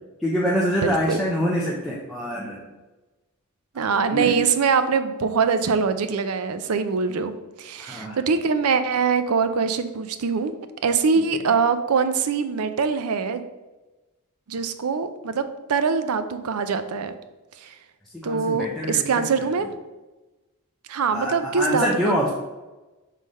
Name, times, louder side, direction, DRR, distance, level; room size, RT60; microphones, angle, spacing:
voice 1, 0.2-2.6 3.7-4.3 7.8-8.2 18.1-19.2 21.1-22.3, equal, ahead, -5 dB, 0.6 m, -25 dB
voice 2, 0.8-1.2 3.7-7.3 7.6-10.5 10.8-13.4 14.5-17.1 17.6-17.8 18.2-19.7 20.9-22.3, right 5 dB, 85° right, 10 dB, 0.5 m, -23 dB
5.5 x 3.3 x 5.3 m, 1.1 s
head